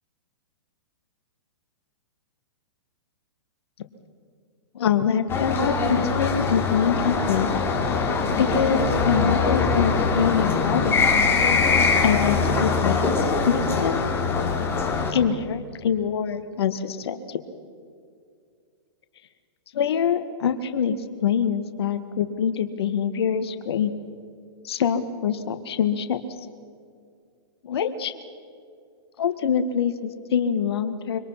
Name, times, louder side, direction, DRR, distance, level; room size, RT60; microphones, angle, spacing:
voice 1, 4.8-7.5 8.4-11.3 12.0-14.1 15.1-17.4 19.7-21.0 21.2-23.9 24.6-26.2 27.6-28.1 29.2-31.2, left 7 dB, 65° left, 9 dB, 1.7 m, -25 dB
sound 1, 5.3-15.1, left 4 dB, 15° left, 3.1 m, -22 dB
25.5 x 25.0 x 5.8 m, 2.2 s
hypercardioid pair, 135°, 14 cm